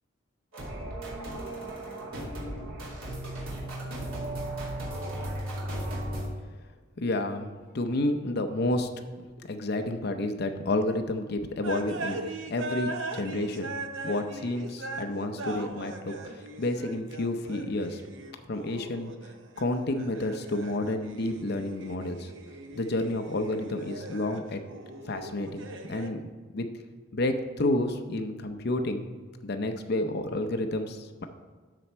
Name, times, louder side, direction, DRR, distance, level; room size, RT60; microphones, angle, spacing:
sound 1, 0.5-6.3, right 1 dB, 85° right, 2.7 m, -35 dB
voice 1, 7.0-9.0 9.4-13.7 14.0-18.0 18.5-19.1 19.6-22.3 22.7-24.6 25.1-26.2 26.5-26.7 27.1-29.0 29.4-31.3, left 1 dB, 50° left, 7 dB, 0.6 m, -30 dB
sound 2, 11.6-15.1 15.3-19.6 19.9-24.4 24.7-26.1, right 2 dB, 60° right, 0.7 m, -40 dB
12.5 x 4.3 x 4.5 m, 1.4 s
head